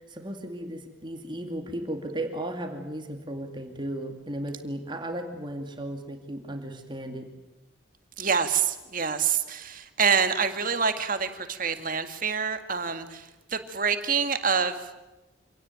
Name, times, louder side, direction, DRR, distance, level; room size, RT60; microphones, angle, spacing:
voice 1, 0.1-7.3, right 1 dB, 25° right, 4 dB, 2.5 m, -35 dB
voice 2, 8.2-13.2 13.5-14.8, right 6 dB, 45° right, 8 dB, 2.0 m, -26 dB
26.5 x 18.0 x 9.3 m, 1.1 s
head